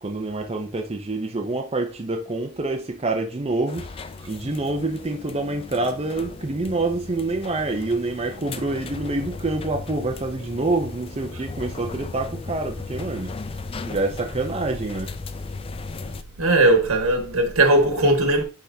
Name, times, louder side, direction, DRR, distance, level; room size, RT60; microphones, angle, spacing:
voice 1, 0.0-3.9 4.3-13.4 13.9-15.2, right 2 dB, 30° right, 0.6 m, -27 dB
sound 1, 3.7-16.2, left 3 dB, 25° left, 0.4 m, -36 dB
voice 2, 16.4-18.4, right 2 dB, 80° right, 1.7 m, -18 dB
10.0 x 3.6 x 2.7 m
head